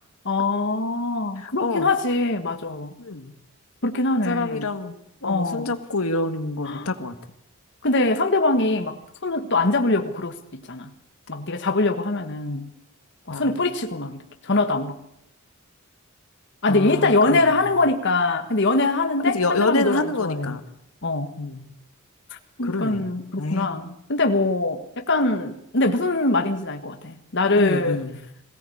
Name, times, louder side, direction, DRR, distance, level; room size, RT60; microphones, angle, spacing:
voice 1, 0.2-2.9 3.8-4.7 5.2-5.8 6.6-6.9 7.8-10.9 11.3-12.7 13.3-15.0 16.6-20.5 21.0-21.3 22.6-28.0, left 2 dB, 55° left, 1.6 m, -23 dB
voice 2, 1.4-1.9 3.0-3.3 4.2-5.0 5.2-7.2 13.3-13.6 16.7-17.5 19.3-20.6 21.4-21.7 22.6-23.0 23.4-23.7 27.6-28.2, left 2 dB, 90° left, 1.7 m, -27 dB
22.5 x 17.0 x 8.6 m
head